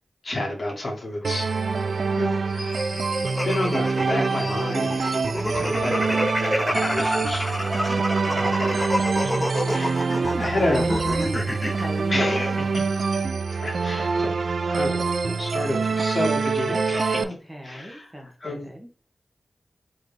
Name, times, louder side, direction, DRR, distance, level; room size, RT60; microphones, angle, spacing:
voice 1, 0.2-1.6 2.1-2.9 3.4-8.9 9.2-10.9 12.1-12.7 13.5-14.3 14.7-17.3 17.6-18.7, left 1 dB, 55° left, -1 dB, 2.0 m, -30 dB
sound 1, 1.2-17.2, right 4 dB, 75° right, 0.3 m, -25 dB
sound 2, 1.4-13.3, left 2 dB, 75° left, 1.4 m, -43 dB
sound 3, 3.3-11.9, left 1 dB, 15° left, 0.8 m, -28 dB
voice 2, 5.3-5.9 7.9-8.7 10.1-12.8 17.2-18.9, equal, 10° right, 1 dB, 1.4 m, -37 dB
4.0 x 3.2 x 3.2 m, 0.40 s
cardioid pair, 50°, 0 cm